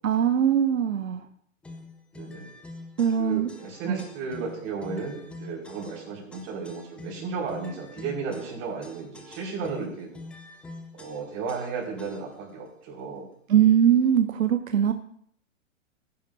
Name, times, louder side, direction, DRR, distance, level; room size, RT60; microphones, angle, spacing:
voice 1, 0.0-1.3 3.0-3.5 3.9-4.0 13.5-14.9, right 9 dB, 90° right, 9 dB, 0.8 m, -21 dB
sound 1, 1.6-12.5, left 2 dB, 5° left, 0.4 m, -45 dB
voice 2, 2.1-2.5 3.2-10.1 10.9-13.3, right 5 dB, 40° right, -2 dB, 4.9 m, -34 dB
17.0 x 10.5 x 2.7 m, 0.63 s
hypercardioid pair, 130°, 39 cm